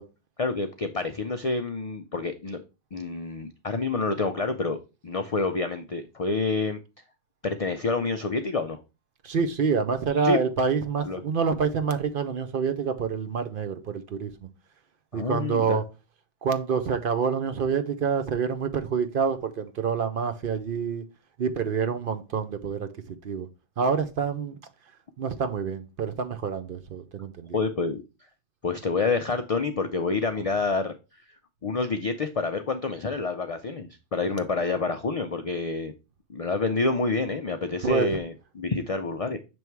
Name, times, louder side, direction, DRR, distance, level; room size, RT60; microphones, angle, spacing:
voice 1, 0.4-2.6 2.9-4.8 5.0-6.8 7.4-8.8 10.2-10.4 11.0-11.2 15.1-15.8 27.5-28.0 28.6-30.9 31.6-35.9 36.3-39.4, left 4 dB, 55° left, 0.4 m, -28 dB
voice 2, 9.2-14.5 15.1-15.8 16.4-21.0 21.4-23.5 23.8-24.6 25.2-27.6 37.8-38.2, right 6 dB, 55° right, 0.7 m, -27 dB
6.8 x 3.1 x 4.5 m
omnidirectional pair, 1.2 m